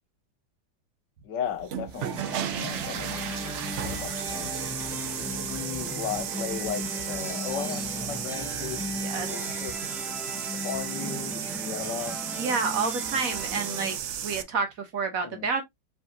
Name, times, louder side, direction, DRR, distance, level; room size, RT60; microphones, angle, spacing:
voice 1, 1.2-2.2 2.5-3.3 3.6-4.7 5.2-8.9 9.3-9.7 10.5-12.1 15.2-15.5, left 8 dB, 80° left, 1.6 m, -36 dB
sound 1, 1.5-14.4, right 10 dB, 80° right, 0.6 m, -34 dB
sound 2, 2.1-14.0, left 1 dB, 5° right, 0.4 m, -37 dB
sound 3, 2.7-9.7, left 6 dB, 50° left, 2.2 m, -47 dB
voice 2, 9.0-9.3 12.4-14.0 14.2-15.6, right 4 dB, 55° right, 1.4 m, -29 dB
4.7 x 3.7 x 2.9 m
omnidirectional pair, 1.9 m